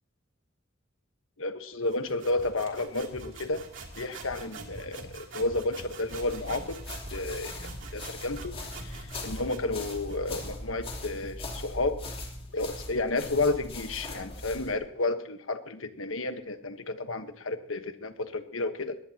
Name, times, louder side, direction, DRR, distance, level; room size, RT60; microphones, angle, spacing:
voice 1, 1.4-3.6 4.0-6.8 7.1-12.0 12.5-19.0, left 2 dB, 80° left, 8 dB, 1.3 m, -32 dB
sound 1, 1.8-10.5, right 3 dB, 65° right, 3.0 m, -45 dB
sound 2, 6.1-14.7, left 1 dB, 30° left, 3.3 m, -40 dB
21.5 x 19.0 x 2.9 m, 0.66 s
head